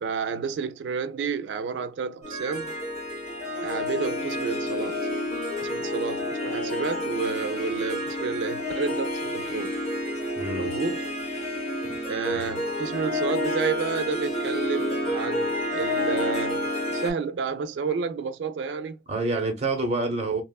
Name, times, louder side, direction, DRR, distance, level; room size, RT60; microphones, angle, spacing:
voice 1, 0.0-2.7 3.6-5.1 5.6-9.7 10.6-11.1 12.1-19.0, right 5 dB, 90° right, 0.3 m, -30 dB
Harp, 2.2-17.1, left 1 dB, 35° left, 1.6 m, -29 dB
voice 2, 10.4-10.7 12.3-12.5 19.1-20.4, right 2 dB, 40° right, 0.9 m, -27 dB
2.9 x 2.3 x 2.2 m
head